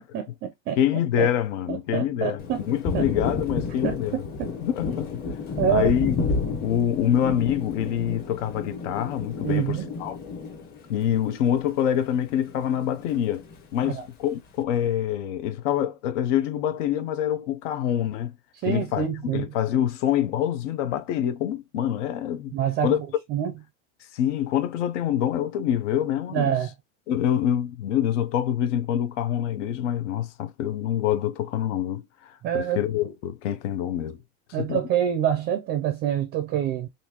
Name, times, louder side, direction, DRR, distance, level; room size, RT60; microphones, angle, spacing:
voice 1, 0.1-0.8 1.2-1.3 1.7-2.6 2.9-3.1 3.8-4.5 5.6-6.2 9.4-9.9 13.8-14.1 18.6-19.5 22.5-23.0 23.3-23.5 26.3-26.7 32.4-32.8 34.5-36.9, right 9 dB, 30° right, 0.4 m, -26 dB
voice 2, 0.8-4.2 4.6-5.1 5.7-6.1 6.6-10.2 10.9-13.4 13.7-18.3 18.7-22.5 22.8-23.0 24.1-26.5 27.1-34.2 34.6-34.8, left 10 dB, 85° left, 0.8 m, -26 dB
Thunder, 2.4-12.2 12.5-13.6, left 4 dB, 25° left, 0.8 m, -31 dB
3.9 x 2.7 x 2.8 m
supercardioid pair, 160°, 35 cm